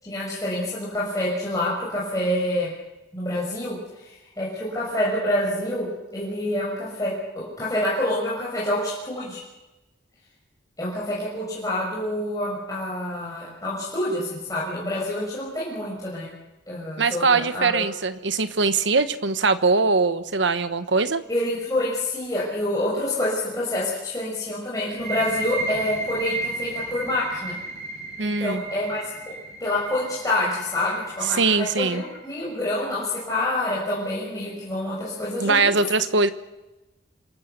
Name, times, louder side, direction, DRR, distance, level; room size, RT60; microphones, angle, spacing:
voice 1, 0.0-2.7 3.1-5.9 6.1-9.4 10.8-16.3 16.7-17.8 21.3-27.5 28.2-29.1 29.6-35.7, left 1 dB, 20° left, -6 dB, 6.3 m, -27 dB
voice 2, 17.0-21.2 28.2-28.6 31.3-32.0 35.4-36.3, right 4 dB, 75° right, 11 dB, 1.2 m, -21 dB
sound 1, 24.9-32.3, right 2 dB, 40° right, 5.1 m, -34 dB
26.5 x 22.0 x 6.9 m, 1.1 s
head